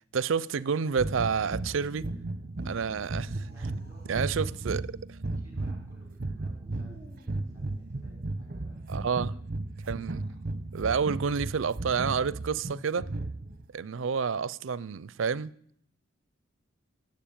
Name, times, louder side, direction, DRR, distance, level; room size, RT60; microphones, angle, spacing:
voice 1, 0.1-2.1 2.7-3.3 4.1-4.8 8.9-9.3 9.8-10.2 10.7-13.1 13.7-15.5, right 6 dB, 80° right, 0.5 m, -29 dB
sound 1, 1.0-13.7, right 2 dB, 45° right, 0.9 m, -35 dB
sound 2, 2.5-4.7 6.6-8.4 10.0-10.5, equal, 35° left, 3.5 m, -59 dB
voice 2, 2.6-3.0 3.4-4.3 5.4-9.2, right 1 dB, 15° right, 5.4 m, -58 dB
16.5 x 7.7 x 8.7 m
head